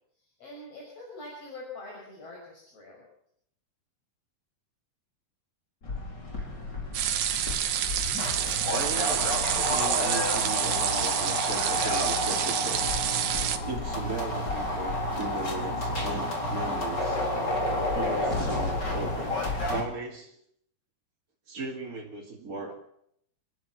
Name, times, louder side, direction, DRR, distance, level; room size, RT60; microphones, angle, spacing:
voice 1, 0.2-3.1, left 2 dB, 50° left, -2 dB, 7.4 m, -44 dB
sound 1, 5.8-19.8, left 1 dB, 30° left, 4.6 m, -30 dB
sound 2, 6.9-13.6, right 10 dB, 85° right, 2.8 m, -28 dB
voice 2, 8.7-12.9 13.7-17.2 17.9-19.3 19.7-20.3 21.5-22.7, right 3 dB, 25° right, -4 dB, 3.1 m, -37 dB
29.5 x 12.0 x 7.7 m, 0.72 s
omnidirectional pair, 3.6 m